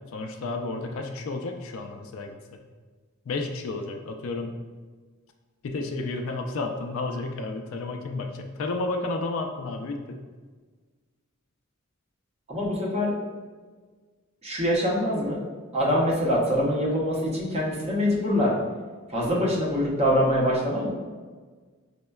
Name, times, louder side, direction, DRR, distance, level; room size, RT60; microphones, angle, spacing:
voice 1, 0.1-2.6 3.3-4.5 5.6-10.2, left 3 dB, 65° left, 4 dB, 0.3 m, -32 dB
voice 2, 12.5-13.2 14.4-15.4 15.7-18.5 19.1-20.9, equal, 30° right, -3 dB, 0.6 m, -24 dB
5.2 x 2.1 x 2.2 m, 1.4 s
head